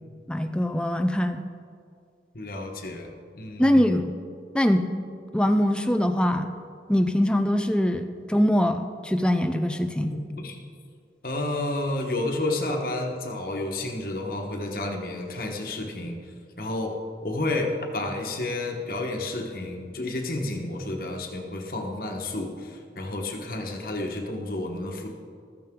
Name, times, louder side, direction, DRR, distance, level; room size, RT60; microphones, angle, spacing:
voice 1, 0.3-1.4 3.6-4.1 4.5-4.9 5.3-6.5 6.9-10.2, equal, 5° left, 7 dB, 0.5 m, -23 dB
voice 2, 2.3-3.1 3.3-4.1 10.0-10.6 11.2-16.2 16.6-25.1, left 2 dB, 55° left, 2 dB, 1.3 m, -31 dB
15.0 x 13.5 x 3.8 m, 2.2 s
head